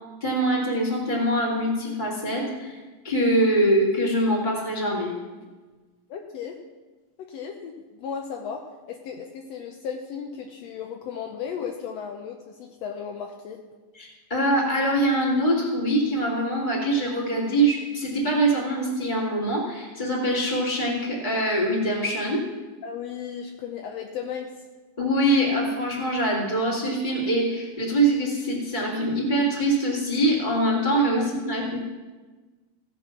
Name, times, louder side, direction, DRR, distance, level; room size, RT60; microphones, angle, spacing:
voice 1, 0.2-2.8 3.0-5.1 14.0-22.4 25.0-31.8, right 1 dB, 15° left, -3 dB, 2.3 m, -24 dB
voice 2, 6.1-6.6 7.2-8.6 8.9-13.6 22.8-24.5 31.1-31.3, left 7 dB, 80° left, 3 dB, 1.5 m, -35 dB
16.5 x 6.0 x 5.9 m, 1.3 s
omnidirectional pair, 3.9 m